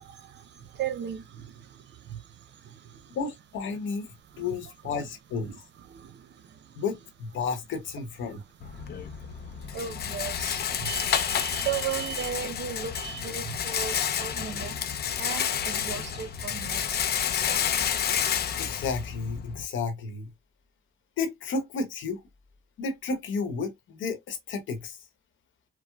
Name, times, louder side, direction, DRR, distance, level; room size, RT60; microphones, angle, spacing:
voice 1, 0.0-3.2 4.3-4.5 5.4-6.8 8.3-18.6, right 9 dB, 65° right, 0.7 m, -38 dB
voice 2, 3.1-5.5 6.8-8.4 18.6-20.3 21.2-22.2 22.8-25.0, left 4 dB, 75° left, 1.0 m, -32 dB
Rattle, 8.6-19.6, left 9 dB, 55° left, 0.5 m, -30 dB
4.6 x 2.0 x 2.3 m
cardioid pair, 90°, 20 cm